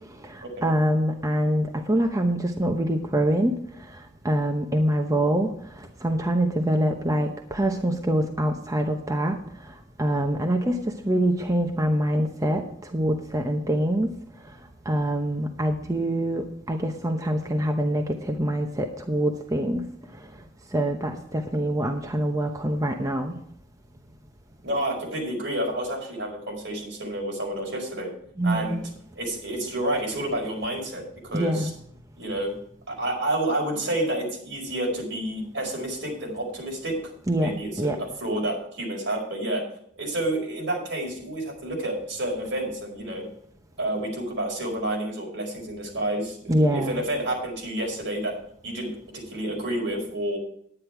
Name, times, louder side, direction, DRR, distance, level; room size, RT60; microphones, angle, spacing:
voice 1, 0.2-3.6 4.2-9.4 10.0-12.6 12.9-14.1 14.9-19.8 20.7-23.3 28.4-28.8 31.3-31.7 37.3-38.0 46.5-47.0, right 1 dB, 15° right, 3 dB, 0.9 m, -25 dB
voice 2, 24.6-28.1 28.4-28.8 29.2-31.7 32.2-32.5 32.9-37.0 37.4-39.6 40.0-43.2 43.8-48.3 48.6-50.4, right 1 dB, 65° right, -1 dB, 5.1 m, -29 dB
10.5 x 9.8 x 4.6 m, 0.68 s
head